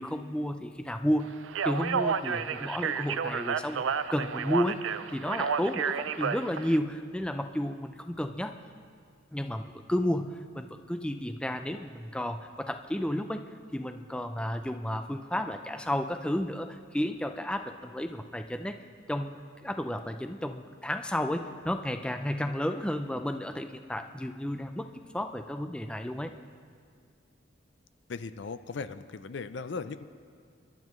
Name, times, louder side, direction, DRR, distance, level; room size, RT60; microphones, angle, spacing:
voice 1, 0.0-1.4 1.6-8.6 9.3-13.4 13.7-18.8 19.1-19.3 19.6-24.9 25.1-26.3, left 1 dB, 5° left, 7 dB, 0.4 m, -32 dB
Speech, 1.4-6.8, right 6 dB, 80° right, 0.4 m, -31 dB
voice 2, 28.1-30.0, left 4 dB, 65° left, 12 dB, 0.5 m, -38 dB
28.5 x 11.5 x 3.2 m, 2.2 s
head